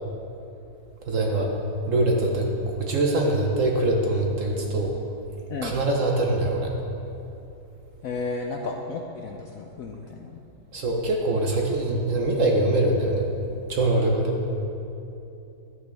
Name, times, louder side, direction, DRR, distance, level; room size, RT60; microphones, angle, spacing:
voice 1, 1.1-1.5 1.9-2.5 2.8-5.0 5.6-6.7 10.7-13.3 13.7-14.3, right 2 dB, 55° right, 1 dB, 1.1 m, -23 dB
voice 2, 8.0-10.4 14.0-14.6, left 4 dB, 70° left, 2 dB, 0.8 m, -33 dB
12.5 x 8.9 x 3.5 m, 2.9 s
omnidirectional pair, 2.0 m